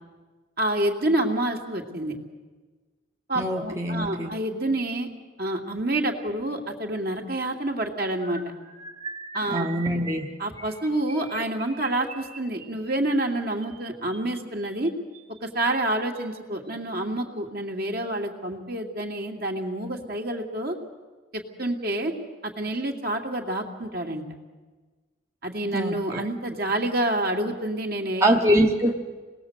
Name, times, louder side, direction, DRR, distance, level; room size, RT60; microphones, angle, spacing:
voice 1, 0.6-2.1 3.3-5.1 5.4-8.4 9.3-9.7 10.4-14.9 15.4-20.8 21.3-22.1 22.4-24.2 25.4-28.4, right 1 dB, 50° right, 2 dB, 2.6 m, -28 dB
voice 2, 3.3-4.3 9.5-10.3 25.7-26.2 28.2-28.9, right 1 dB, 15° right, 1 dB, 1.1 m, -23 dB
sound 1, 8.2-15.4 16.1-16.4 16.7-16.9 17.2-17.4, right 5 dB, 35° right, 2.7 m, -43 dB
27.5 x 20.0 x 8.1 m, 1.4 s
head